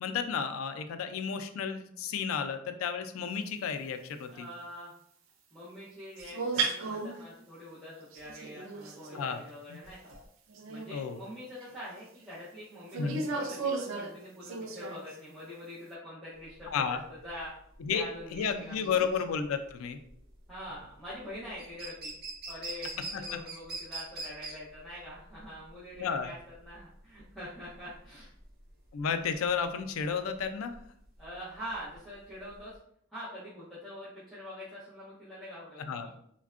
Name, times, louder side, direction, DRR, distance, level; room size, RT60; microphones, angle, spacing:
voice 1, 0.0-4.5 9.1-9.4 9.7-9.8 10.9-11.2 13.0-13.2 16.7-17.0 17.8-20.0 23.1-23.2 26.0-26.3 28.9-30.7 35.9-36.1, left 6 dB, 85° left, 8 dB, 0.3 m, -32 dB
voice 2, 4.3-4.9 5.5-10.1 10.7-16.9 17.2-17.5 17.9-19.0 20.5-22.1 22.5-28.3 31.2-32.8 33.1-36.1, left 1 dB, ahead, -12 dB, 0.7 m, -44 dB
sound 1, 6.2-7.2 8.1-9.3 9.8-10.2 10.5-10.9 11.6-11.7 12.9-15.2, right 4 dB, 80° right, 0.4 m, -35 dB
sound 2, 16.4-32.8, right 2 dB, 50° right, 0.7 m, -44 dB
3.4 x 2.2 x 2.4 m, 0.69 s
head